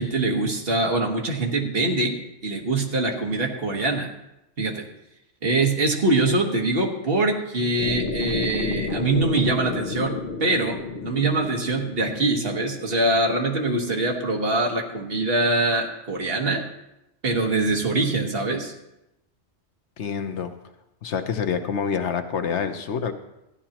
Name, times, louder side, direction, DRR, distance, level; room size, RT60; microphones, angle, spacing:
voice 1, 0.0-2.2 2.4-4.1 4.6-4.9 5.4-16.6 17.2-18.7, right 2 dB, 55° right, 1 dB, 1.6 m, -23 dB
sound 1, 7.8-13.9, left 3 dB, 50° left, 1.1 m, -31 dB
voice 2, 20.0-20.5 21.0-23.1, left 6 dB, 80° left, 7 dB, 1.1 m, -27 dB
14.5 x 11.0 x 2.9 m, 0.89 s
omnidirectional pair, 1.2 m